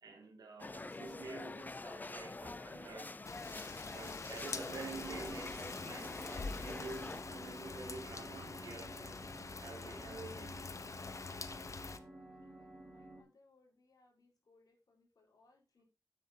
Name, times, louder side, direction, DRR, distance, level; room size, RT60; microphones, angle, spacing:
voice 1, 0.0-3.2 3.9-9.2 9.6-10.7, right 3 dB, 90° right, 2.4 m, -49 dB
sound 1, 0.6-7.2, left 3 dB, 25° left, 0.4 m, -46 dB
Rain, 3.2-12.0, left 4 dB, 50° left, 0.9 m, -45 dB
sound 2, 4.5-13.2, right 1 dB, 20° right, 3.6 m, -52 dB
voice 2, 12.0-15.8, left 3 dB, 70° left, 4.3 m, -70 dB
9.5 x 8.0 x 2.8 m
cardioid pair, 70°, 7 cm